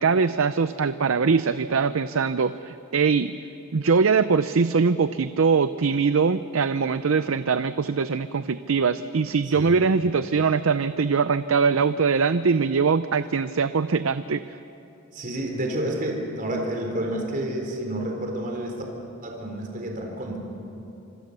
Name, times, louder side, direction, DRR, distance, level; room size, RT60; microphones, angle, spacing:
voice 1, 0.0-3.4 3.7-14.4, right 5 dB, 70° right, 12 dB, 0.6 m, -22 dB
voice 2, 15.1-18.8 19.2-20.4, right 1 dB, 40° right, 1 dB, 4.2 m, -29 dB
26.5 x 25.5 x 6.8 m, 2.8 s
head